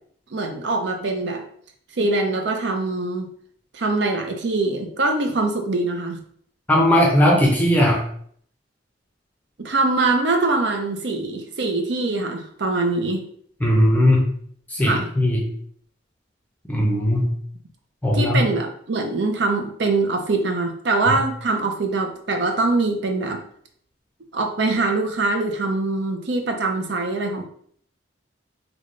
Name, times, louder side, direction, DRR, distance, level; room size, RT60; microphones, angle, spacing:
voice 1, 0.3-1.4 2.0-3.3 3.7-6.2 9.6-13.2 14.8-15.1 18.1-23.4 24.3-27.4, right 3 dB, 65° right, 4 dB, 0.6 m, -23 dB
voice 2, 6.7-8.0 13.6-14.2 14.7-15.4 16.7-17.3 18.0-18.4 21.1-21.2, left 1 dB, 10° left, -2 dB, 0.6 m, -18 dB
3.4 x 2.2 x 3.7 m, 0.62 s
head